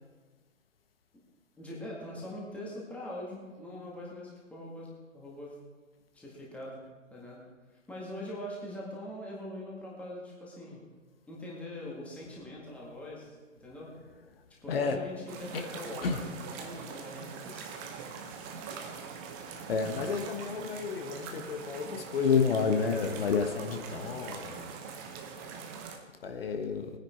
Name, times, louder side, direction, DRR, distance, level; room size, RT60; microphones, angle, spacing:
voice 1, 1.6-4.9 5.1-5.6 6.1-6.8 7.1-7.4 7.9-10.8 11.3-13.9 14.6-16.1 16.4-17.6, left 1 dB, 5° left, -4 dB, 1.9 m, -42 dB
sound 1, 15.3-26.0, right 5 dB, 15° right, 0.9 m, -43 dB
voice 2, 19.7-24.8 26.2-26.9, left 5 dB, 45° left, 5 dB, 1.4 m, -30 dB
20.0 x 9.9 x 4.6 m, 1.4 s
figure-of-eight pair, 140°, 40 cm